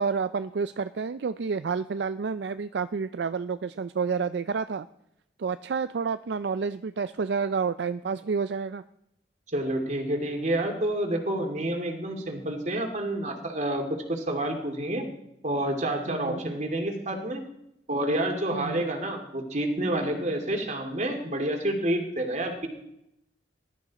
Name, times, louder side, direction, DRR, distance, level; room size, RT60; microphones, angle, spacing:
voice 1, 0.0-4.9 5.4-8.8 16.1-16.4 18.5-18.8, right 5 dB, 65° right, 12 dB, 0.4 m, -29 dB
voice 2, 9.5-15.1 15.4-17.4 17.9-22.7, right 1 dB, 40° right, 3 dB, 2.5 m, -29 dB
19.5 x 12.0 x 4.1 m, 0.82 s
head